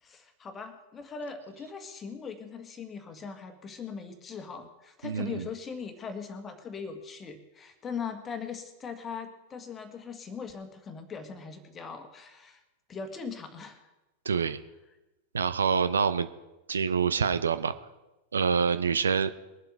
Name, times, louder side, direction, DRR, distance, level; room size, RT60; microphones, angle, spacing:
voice 1, 0.0-12.6 12.9-13.9 14.4-14.5, left 5 dB, 20° left, 8 dB, 1.7 m, -40 dB
voice 2, 5.0-5.5 14.2-14.6 15.3-16.3 16.7-17.7 18.3-19.3, right 6 dB, 70° right, 12 dB, 0.6 m, -26 dB
22.0 x 7.7 x 5.1 m, 1.0 s
figure-of-eight pair, 90°, 0 cm